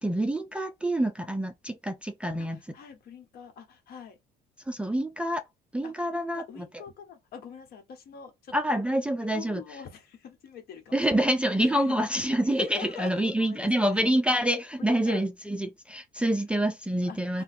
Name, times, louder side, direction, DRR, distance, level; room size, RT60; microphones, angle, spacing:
voice 1, 0.0-2.6 4.7-5.4 5.7-6.7 8.5-9.6 10.9-17.4, right 1 dB, 5° right, 0.3 m, -27 dB
voice 2, 2.4-4.2 5.8-8.8 9.3-11.2 11.6-12.3 12.6-14.0 14.8-15.2 17.1-17.4, left 7 dB, 65° left, 1.0 m, -45 dB
2.7 x 2.2 x 4.0 m
cardioid pair, 110°, 17 cm